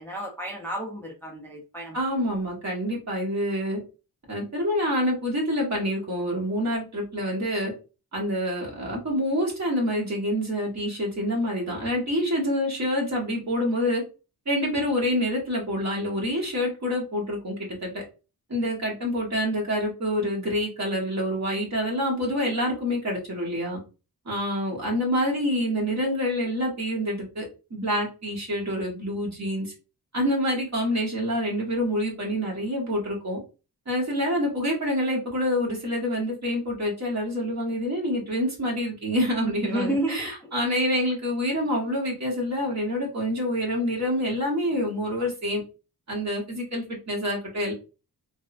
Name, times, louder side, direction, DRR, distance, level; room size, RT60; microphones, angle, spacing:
voice 1, 0.0-2.0 39.7-40.5, right 1 dB, 5° left, -1 dB, 0.5 m, -31 dB
voice 2, 1.9-3.8 4.3-7.7 8.1-14.0 14.5-18.0 18.5-23.8 24.2-27.4 27.7-29.7 30.1-33.4 33.9-45.6 46.1-47.7, equal, 45° right, -3 dB, 1.3 m, -27 dB
3.3 x 2.1 x 2.4 m, 0.32 s
wide cardioid pair, 130°, 38 cm